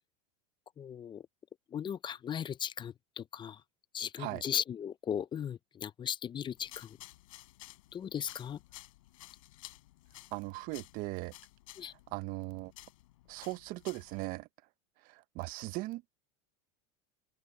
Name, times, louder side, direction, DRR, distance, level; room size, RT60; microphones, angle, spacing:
voice 1, 0.8-1.2 1.7-3.6 3.9-7.0 7.9-8.6 11.8-11.9, left 8 dB, 25° left, 0.6 m, -37 dB
sound 1, 6.6-14.2, left 17 dB, 75° left, 6.0 m, -54 dB
voice 2, 10.3-11.3 11.8-12.7 13.3-14.5 15.0-16.1, right 21 dB, 55° right, 1.1 m, -39 dB
open air
hypercardioid pair, 105°, 18 cm